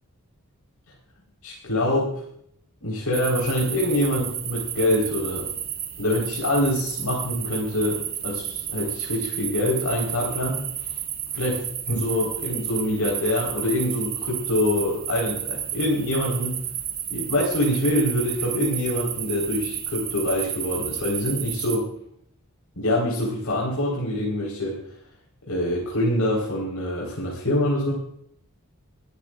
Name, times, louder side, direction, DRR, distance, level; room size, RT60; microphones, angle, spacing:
voice 1, 1.4-2.2 2.8-5.5 6.0-10.7 11.3-11.6 11.9-16.6 17.1-21.9 22.8-24.8 25.4-27.9, left 1 dB, 90° left, -4 dB, 4.4 m, -25 dB
sound 1, 3.1-21.8, right 10 dB, 45° right, 1.9 m, -32 dB
23.5 x 13.0 x 2.5 m, 0.68 s
head